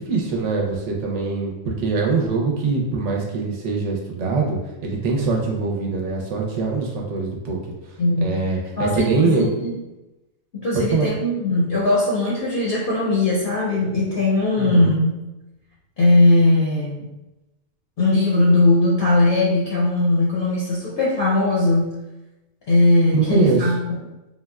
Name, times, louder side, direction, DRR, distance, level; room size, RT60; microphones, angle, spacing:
voice 1, 0.0-7.6 8.2-9.5 10.7-11.1 14.6-14.9 23.1-23.7, right 4 dB, 70° right, -1 dB, 0.9 m, -23 dB
voice 2, 8.0-8.4 8.8-9.7 10.5-15.2 16.0-17.1 18.0-22.0 22.7-24.0, left 2 dB, 60° left, -5 dB, 0.8 m, -19 dB
3.6 x 2.1 x 2.3 m, 1.0 s
omnidirectional pair, 1.4 m